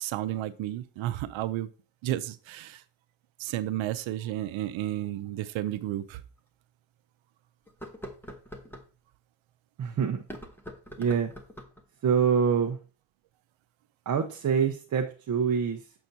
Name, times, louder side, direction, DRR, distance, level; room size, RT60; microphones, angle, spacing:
voice 1, 0.0-1.7 2.0-2.8 3.4-6.2, right 13 dB, 85° right, 0.6 m, -32 dB
sound 1, 5.7-5.8 6.4-6.5 7.7-8.9 10.2-11.8, equal, 5° left, 0.8 m, -44 dB
voice 2, 9.8-10.2 11.0-11.3 12.0-12.8 14.1-15.9, right 7 dB, 40° right, 0.7 m, -25 dB
6.9 x 5.9 x 2.6 m
cardioid pair, 115°, 45 cm